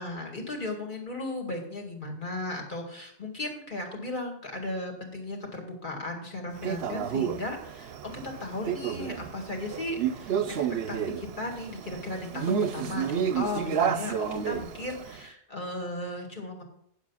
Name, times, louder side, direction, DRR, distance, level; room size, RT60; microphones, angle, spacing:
voice 1, 0.0-7.9 8.2-16.6, left 2 dB, 45° left, 1 dB, 2.3 m, -36 dB
Male speech man speaking, 6.6-15.2, right 8 dB, 65° right, 0.8 m, -31 dB
8.9 x 7.2 x 5.6 m, 0.71 s
omnidirectional pair, 1.2 m